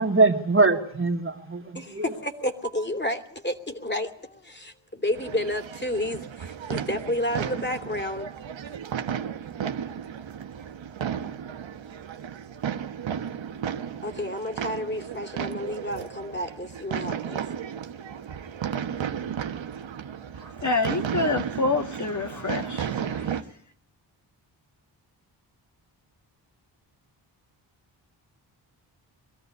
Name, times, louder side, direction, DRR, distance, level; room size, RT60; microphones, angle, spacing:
voice 1, 0.0-2.1, right 3 dB, 25° right, 2.4 m, -22 dB
voice 2, 1.7-8.3 14.0-17.4, left 1 dB, 20° left, 3.0 m, -31 dB
sound 1, 5.1-23.4, right 8 dB, 70° right, 1.4 m, -34 dB
voice 3, 20.3-23.6, left 3 dB, 35° left, 1.7 m, -28 dB
23.0 x 13.5 x 9.7 m
cardioid pair, 50°, 47 cm